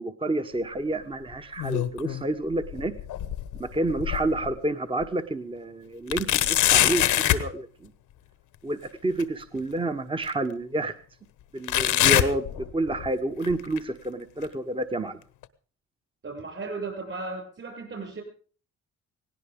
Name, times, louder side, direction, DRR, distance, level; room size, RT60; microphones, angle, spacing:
voice 1, 0.0-2.9 3.6-7.9 8.6-10.9 11.5-12.5 12.7-15.2, right 2 dB, 15° right, 9 dB, 1.1 m, -29 dB
sound 1, 1.3-2.2 2.6-4.5 5.0-5.1 6.1-7.5 9.2-9.3 10.2-10.3 11.7-13.1 13.4-13.8 14.4-14.5 15.4-15.5, left 13 dB, 85° left, 1.2 m, -24 dB
voice 2, 16.2-18.2, right 3 dB, 40° right, 2 dB, 6.8 m, -35 dB
18.0 x 17.5 x 3.7 m, 0.41 s
cardioid pair, 90°, 30 cm